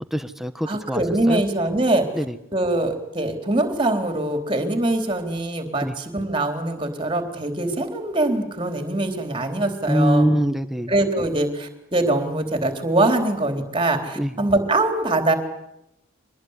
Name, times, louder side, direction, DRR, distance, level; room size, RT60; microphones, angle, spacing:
voice 1, 0.1-1.4 2.2-2.3 5.8-5.9 9.9-10.9 14.2-14.3, equal, ahead, 11 dB, 1.2 m, -23 dB
voice 2, 0.6-2.2 2.5-10.3 10.9-15.3, right 2 dB, 25° right, 6 dB, 3.9 m, -23 dB
24.5 x 20.0 x 9.9 m, 0.83 s
head